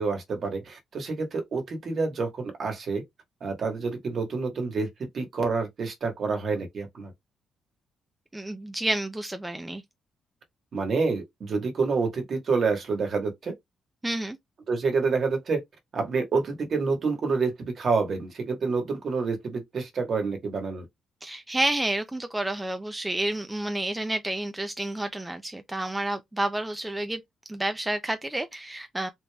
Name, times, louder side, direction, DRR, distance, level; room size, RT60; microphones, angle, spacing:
voice 1, 0.0-3.0 3.4-4.9 5.1-7.1 10.7-13.5 14.7-15.6 15.9-20.9, right 4 dB, 50° right, 1.3 m, -28 dB
voice 2, 8.3-9.8 14.0-14.4 21.2-27.2 27.5-29.1, right 1 dB, 10° right, 0.4 m, -30 dB
3.9 x 3.3 x 2.3 m
cardioid pair, 130°, 0 cm